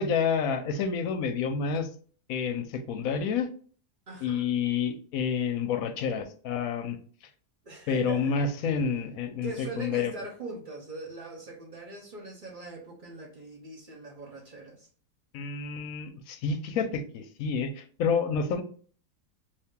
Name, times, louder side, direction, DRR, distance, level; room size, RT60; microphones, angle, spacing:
voice 1, 0.0-1.9 2.3-3.5 4.2-7.0 7.9-9.5 9.8-10.1 15.3-18.6, left 6 dB, 70° left, 1.0 m, -29 dB
voice 2, 4.1-4.5 7.6-8.5 9.4-14.9, right 2 dB, 45° right, 0.7 m, -41 dB
2.8 x 2.8 x 3.5 m
omnidirectional pair, 1.7 m